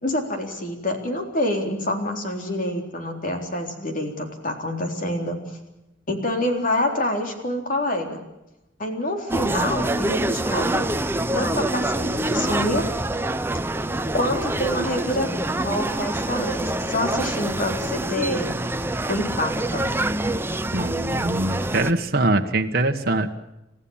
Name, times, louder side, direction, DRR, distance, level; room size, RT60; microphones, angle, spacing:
voice 1, 0.0-5.6 6.1-8.2 8.8-10.9 11.3-12.8 14.1-18.5 19.1-19.8, left 1 dB, 45° left, 4 dB, 3.8 m, -27 dB
sound 1, 9.3-21.9, right 1 dB, 10° right, 0.7 m, -26 dB
voice 2, 20.7-23.3, right 2 dB, 50° right, 3 dB, 1.3 m, -23 dB
30.0 x 15.0 x 7.3 m, 0.92 s
head